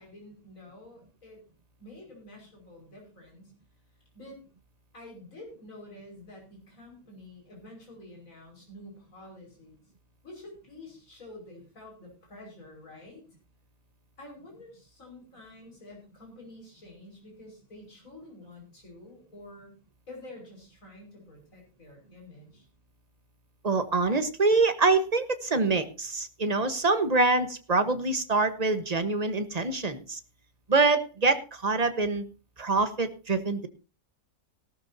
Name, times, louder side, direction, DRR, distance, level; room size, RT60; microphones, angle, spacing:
voice 1, 0.0-1.4 1.8-3.5 4.1-4.4 4.9-9.8 10.2-13.2 14.2-19.8 20.1-22.7, left 1 dB, 65° left, 0 dB, 5.8 m, -48 dB
voice 2, 23.6-30.2 30.7-32.2 32.6-33.7, right 3 dB, 30° right, 10 dB, 1.3 m, -25 dB
18.0 x 12.5 x 2.8 m, 0.32 s
omnidirectional pair, 1.5 m